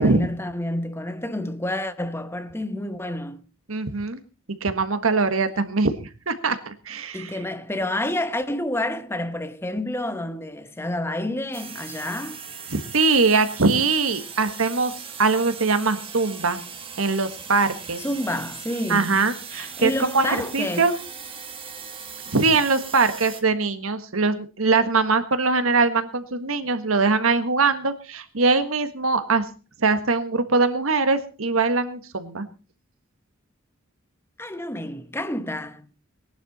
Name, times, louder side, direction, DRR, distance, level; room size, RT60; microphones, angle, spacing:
voice 1, 0.0-3.4 7.1-12.4 18.0-19.2 19.5-20.9 34.4-35.9, left 1 dB, 10° left, 0.9 m, -29 dB
voice 2, 3.7-4.2 4.6-7.4 12.7-14.9 15.2-16.6 17.0-18.0 18.9-20.9 22.3-29.5 29.8-32.5, right 4 dB, 90° right, 1.6 m, -22 dB
sound 1, 11.5-23.4, right 6 dB, 25° right, 1.6 m, -39 dB
19.0 x 11.5 x 4.3 m
head